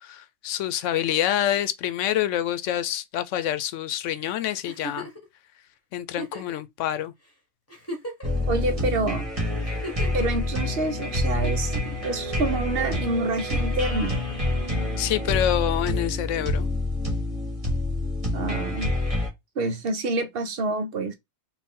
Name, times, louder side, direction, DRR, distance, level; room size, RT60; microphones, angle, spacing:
voice 1, 0.0-5.1 5.9-7.1 15.0-16.7, left 11 dB, 85° left, 0.9 m, -27 dB
Giggle, 4.7-5.2 6.1-6.6 7.2-7.3 7.7-8.5 9.6-10.3 11.4-12.1 13.4-13.8 15.3-15.4, right 1 dB, 15° left, 1.2 m, -37 dB
Country Music, 8.2-19.3, left 2 dB, 30° right, 1.8 m, -27 dB
voice 2, 8.5-9.3 10.1-11.7 12.0-14.2 18.3-18.9 19.6-21.1, right 2 dB, 60° right, 0.8 m, -27 dB
4.2 x 2.5 x 3.6 m
omnidirectional pair, 1.2 m